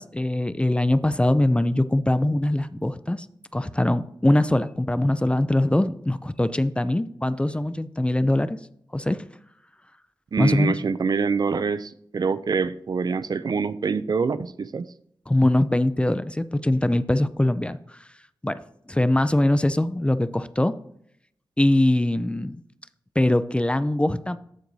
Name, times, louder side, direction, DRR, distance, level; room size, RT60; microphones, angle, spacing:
voice 1, 0.0-3.3 3.5-8.6 8.9-9.3 10.4-10.8 15.3-18.0 18.4-18.6 18.9-20.8 21.6-22.6 23.2-24.4, left 1 dB, 15° left, 14 dB, 0.4 m, -22 dB
voice 2, 10.3-14.9, right 5 dB, 55° right, 14 dB, 0.4 m, -25 dB
13.5 x 4.6 x 2.7 m, 0.70 s
wide cardioid pair, 70°, 8 cm